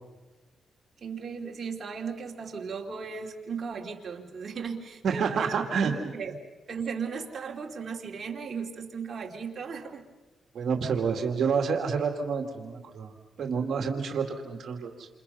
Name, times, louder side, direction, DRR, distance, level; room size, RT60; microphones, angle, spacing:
voice 1, 1.0-6.3 6.7-10.0, right 5 dB, 40° right, 0 dB, 2.8 m, -36 dB
voice 2, 5.0-5.9 10.5-13.1 13.4-15.1, right 6 dB, 60° right, 3 dB, 2.4 m, -28 dB
29.0 x 28.0 x 5.7 m, 1.2 s
cardioid pair, 130°, 0 cm